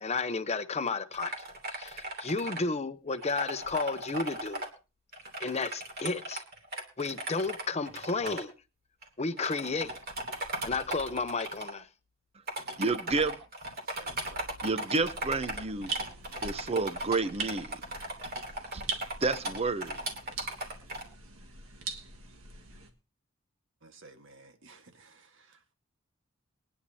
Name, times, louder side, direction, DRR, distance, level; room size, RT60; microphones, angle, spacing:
voice 1, 0.0-1.3 1.7-4.6 5.4-6.4 7.0-8.5 9.2-9.9 10.6-11.9, left 4 dB, 30° left, 0.8 m, -32 dB
sound 1, 1.1-2.6 3.1-4.7 5.1-8.4 9.0-9.1 9.4-11.7 12.5-21.0, right 1 dB, 45° right, 2.9 m, -38 dB
voice 2, 12.8-13.4 14.6-15.9 16.4-17.8 18.7-18.8 19.2-20.0, right 3 dB, 30° right, 0.7 m, -30 dB
voice 3, 14.0-14.5 23.8-25.2, right 2 dB, 65° right, 1.6 m, -53 dB
sound 2, 15.0-22.9, right 4 dB, 80° right, 1.7 m, -42 dB
22.5 x 10.0 x 2.8 m
head